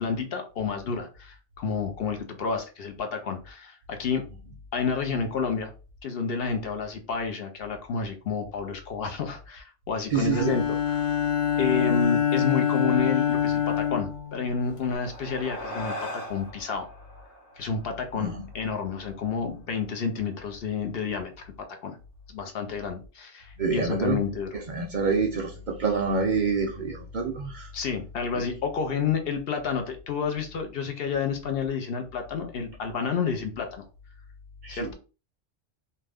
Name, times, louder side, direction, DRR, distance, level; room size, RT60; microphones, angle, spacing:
voice 1, 0.0-4.2 4.7-5.7 6.0-11.0 11.6-16.9 17.6-18.3 18.5-21.3 21.8-22.0 22.3-24.5 27.7-33.8 34.7-34.9, left 5 dB, 65° left, 0.8 m, -30 dB
voice 2, 10.1-10.5 18.1-18.4 23.6-24.2 24.5-27.7 28.4-28.5 34.6-34.9, right 4 dB, 55° right, 0.6 m, -27 dB
Bowed string instrument, 10.3-14.9, left 9 dB, 45° left, 0.4 m, -25 dB
sound 1, 14.6-19.3, left 1 dB, 90° left, 1.5 m, -40 dB
2.6 x 2.2 x 3.3 m
omnidirectional pair, 1.1 m